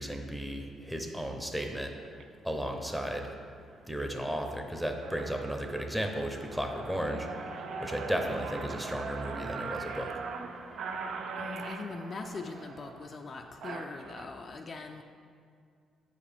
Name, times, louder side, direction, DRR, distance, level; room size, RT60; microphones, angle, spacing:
voice 1, 0.0-1.9 2.4-3.3 3.9-7.3 7.8-10.1, equal, 5° right, 3 dB, 0.8 m, -34 dB
sound 1, 2.0-2.2 2.9-3.1 3.6-4.1 4.5-4.6 4.8-14.3, right 4 dB, 70° right, 0.4 m, -41 dB
Trumpet, 7.3-12.5, right 1 dB, 40° right, 1.2 m, -52 dB
voice 2, 11.4-15.0, left 3 dB, 45° left, 4 dB, 0.4 m, -41 dB
7.9 x 4.9 x 3.5 m, 2.2 s
cardioid pair, 90°, 0 cm